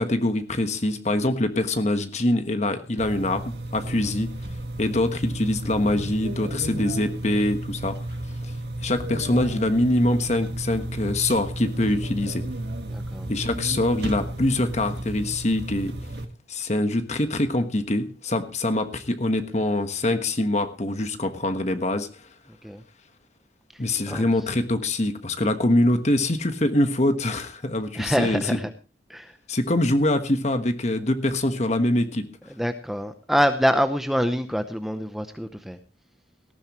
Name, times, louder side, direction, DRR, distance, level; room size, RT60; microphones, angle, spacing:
voice 1, 0.0-4.3 4.8-8.0 8.4-8.5 8.8-12.5 13.3-15.9 16.5-22.1 23.8-28.6 29.5-32.3, left 1 dB, 40° left, 9 dB, 1.3 m, -24 dB
sound 1, 3.0-16.3, right 1 dB, 65° right, 1.7 m, -33 dB
voice 2, 12.9-13.3 22.6-22.8 24.1-24.2 28.0-28.7 29.1-29.3 32.6-35.8, equal, ahead, 8 dB, 0.7 m, -25 dB
18.5 x 14.0 x 3.1 m, 0.31 s
head